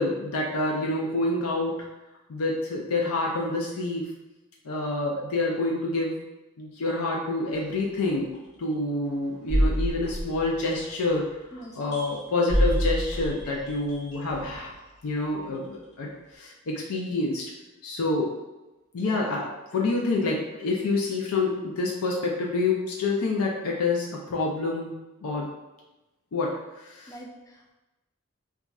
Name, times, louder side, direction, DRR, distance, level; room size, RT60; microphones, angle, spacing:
voice 1, 0.0-1.9 2.3-4.1 4.6-6.2 6.6-8.3 8.6-11.2 11.8-14.7 15.0-17.4 17.8-18.3 18.9-25.5 26.3-26.5 26.8-27.1, left 2 dB, 85° left, -2 dB, 0.5 m, -27 dB
sound 1, 7.5-7.6 8.3-8.5 9.5-11.2 11.6-14.8 15.5-15.7, equal, 50° left, 1.2 m, -27 dB
voice 2, 11.5-12.0 27.1-27.7, right 1 dB, 15° left, 0 dB, 0.3 m, -44 dB
2.4 x 2.3 x 4.0 m, 1.0 s
head